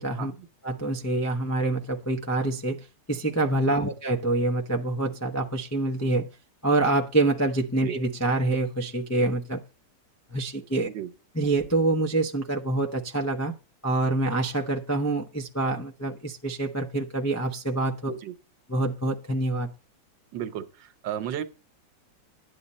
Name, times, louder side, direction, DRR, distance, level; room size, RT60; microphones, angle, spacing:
voice 1, 0.0-0.3 0.6-6.3 6.6-9.6 10.3-10.9 11.3-13.5 13.8-18.2 18.7-19.7, right 2 dB, 25° left, 0.3 m, -26 dB
voice 2, 20.3-21.4, right 10 dB, 85° right, 1.6 m, -34 dB
11.0 x 8.6 x 4.2 m
omnidirectional pair, 1.9 m